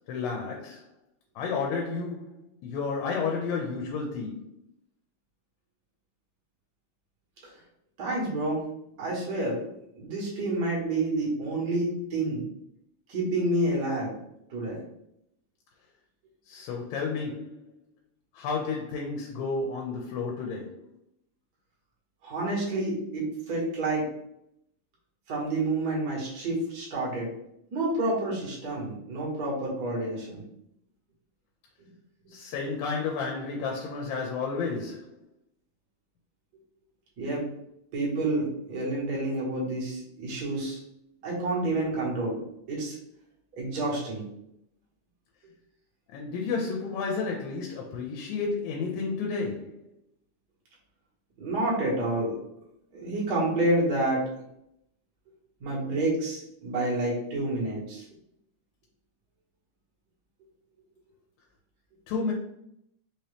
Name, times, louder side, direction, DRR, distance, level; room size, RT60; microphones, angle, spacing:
voice 1, 0.1-0.9 1.4-4.5 16.5-17.6 18.3-20.8 32.3-35.1 46.1-49.9 62.1-62.3, left 4 dB, 85° left, 2.4 m, -31 dB
voice 2, 8.0-8.6 9.0-9.6 10.0-12.4 13.1-14.1 14.5-14.8 22.2-24.0 25.3-27.3 27.7-30.4 31.8-31.9 37.2-37.5 37.9-40.8 41.2-42.4 42.7-43.0 43.5-44.2 51.4-52.3 52.9-54.2 55.6-58.0, right 2 dB, 50° right, 1.2 m, -29 dB
5.2 x 2.9 x 3.3 m
omnidirectional pair, 4.1 m